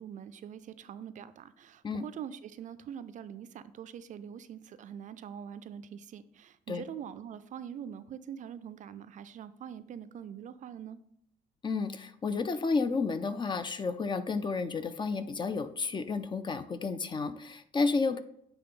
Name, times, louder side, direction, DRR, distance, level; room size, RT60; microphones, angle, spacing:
voice 1, 0.0-11.0, right 8 dB, 50° right, 13 dB, 0.4 m, -44 dB
voice 2, 11.6-18.2, left 4 dB, 30° left, 11 dB, 0.5 m, -31 dB
9.5 x 3.4 x 3.7 m, 0.72 s
cardioid pair, 110°, 17 cm